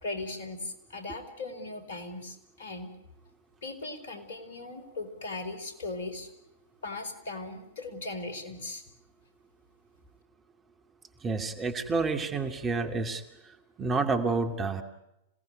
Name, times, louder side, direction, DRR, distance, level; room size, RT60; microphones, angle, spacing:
voice 1, 0.0-2.9 3.6-6.3 6.8-8.8, left 2 dB, 60° left, 9 dB, 4.6 m, -38 dB
voice 2, 11.2-13.2 13.8-14.8, right 4 dB, 20° right, 7 dB, 2.4 m, -29 dB
27.0 x 18.0 x 9.3 m, 0.89 s
figure-of-eight pair, 100°, 0 cm